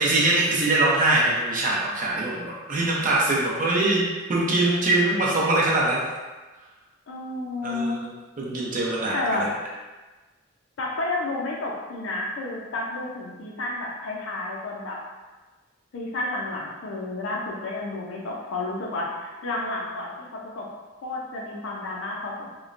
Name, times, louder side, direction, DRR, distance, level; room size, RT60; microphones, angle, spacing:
voice 1, 0.0-4.0 4.3-6.1 7.6-8.0 8.4-9.5, right 2 dB, 40° right, -5 dB, 0.6 m, -23 dB
voice 2, 7.1-8.0 9.1-9.4 10.8-15.0 15.9-20.7 21.0-22.5, left 2 dB, 75° left, -2 dB, 0.5 m, -31 dB
3.0 x 2.1 x 2.5 m, 1.2 s
head